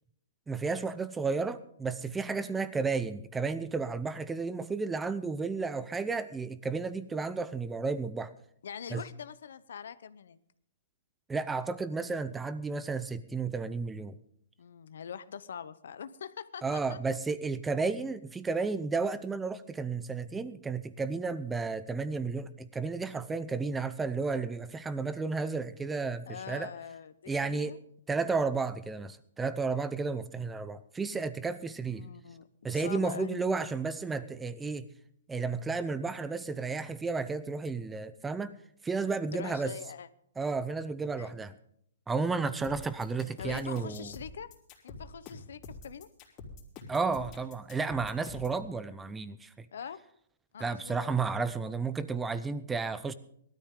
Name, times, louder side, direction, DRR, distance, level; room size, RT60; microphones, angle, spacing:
voice 1, 0.5-8.3 8.9-9.0 11.3-14.2 16.6-26.7 27.3-27.8 28.1-32.1 32.6-34.9 35.3-38.5 38.8-39.7 40.4-41.6 42.1-44.1 46.9-49.7 50.6-53.1, right 4 dB, 10° right, 14 dB, 0.7 m, -32 dB
voice 2, 2.4-2.7 8.6-10.4 14.6-17.0 26.3-27.8 31.9-32.5 32.7-33.5 39.3-40.1 41.2-41.4 43.1-44.5 44.8-46.1 49.7-50.0 50.5-51.1, left 7 dB, 70° left, 15 dB, 0.9 m, -43 dB
sound 1, 42.6-48.6, left 3 dB, 25° left, 3.3 m, -46 dB
18.5 x 13.0 x 3.8 m, 0.68 s
hypercardioid pair, 155°, 0 cm